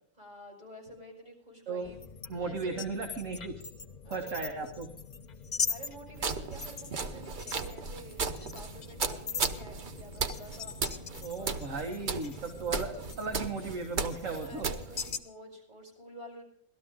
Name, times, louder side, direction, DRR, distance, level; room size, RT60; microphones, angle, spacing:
voice 1, 0.2-2.0 2.4-2.8 4.0-4.7 5.7-10.8 11.0-11.7 14.4-16.4, right 1 dB, 25° right, -2 dB, 5.5 m, -49 dB
sound 1, 1.8-15.2, left 6 dB, 60° left, 0.4 m, -41 dB
voice 2, 2.3-3.6 4.1-4.9 11.2-14.7, right 4 dB, 45° right, 2 dB, 1.7 m, -36 dB
sound 2, 6.2-15.2, right 4 dB, 70° right, 0.4 m, -36 dB
18.5 x 13.0 x 3.7 m, 0.70 s
omnidirectional pair, 2.0 m